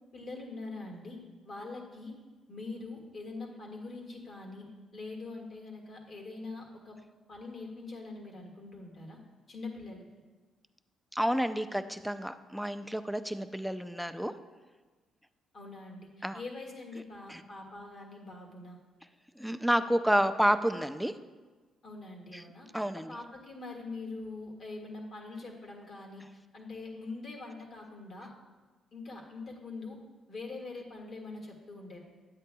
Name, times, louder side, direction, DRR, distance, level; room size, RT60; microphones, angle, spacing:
voice 1, 0.1-2.1 2.5-4.7 4.9-7.0 7.3-9.2 9.5-10.0 15.5-18.8 21.8-26.2 26.5-28.3 28.9-30.0 30.3-32.0, left 3 dB, 50° left, 0 dB, 1.7 m, -43 dB
voice 2, 11.1-14.3 16.2-16.4 17.3-17.4 19.4-21.1 22.3-22.4 22.7-23.2, equal, ahead, 9 dB, 0.4 m, -30 dB
10.5 x 8.2 x 2.2 m, 1.3 s
cardioid pair, 90°, 0 cm